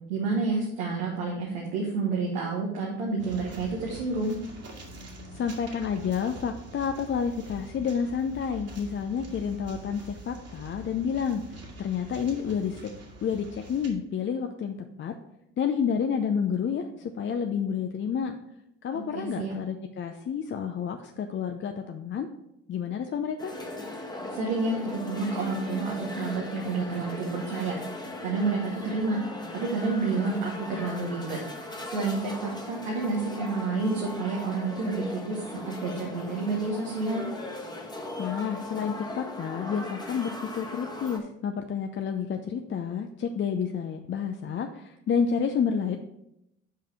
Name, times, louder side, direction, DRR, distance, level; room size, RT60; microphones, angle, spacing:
voice 1, 0.1-4.4 18.9-19.5 24.3-27.7 28.2-29.2 29.5-37.2, right 3 dB, 90° right, -1 dB, 1.2 m, -29 dB
sound 1, 3.2-13.9, right 1 dB, 50° right, 2.0 m, -45 dB
voice 2, 5.3-12.9 13.2-15.1 15.6-18.3 18.8-22.3 22.7-23.6 38.2-46.0, left 7 dB, 40° left, 5 dB, 0.6 m, -30 dB
sound 2, 23.4-41.2, left 1 dB, 15° left, 1.3 m, -38 dB
5.6 x 4.9 x 5.8 m, 0.81 s
hypercardioid pair, 60°, 31 cm